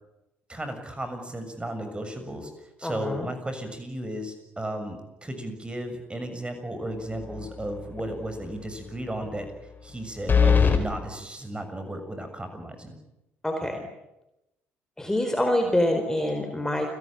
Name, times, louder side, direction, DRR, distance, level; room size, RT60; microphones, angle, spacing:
voice 1, 0.5-2.5 2.8-9.5 9.8-12.9, right 1 dB, 15° right, 7 dB, 6.8 m, -34 dB
voice 2, 2.8-3.3 13.4-13.8 15.0-16.9, left 1 dB, 10° left, 5 dB, 4.3 m, -25 dB
sound 1, 7.2-7.6 8.0-8.1 10.3-10.8, left 6 dB, 30° left, 4.4 m, -20 dB
29.5 x 17.5 x 9.0 m, 0.93 s
figure-of-eight pair, 50°, 7 cm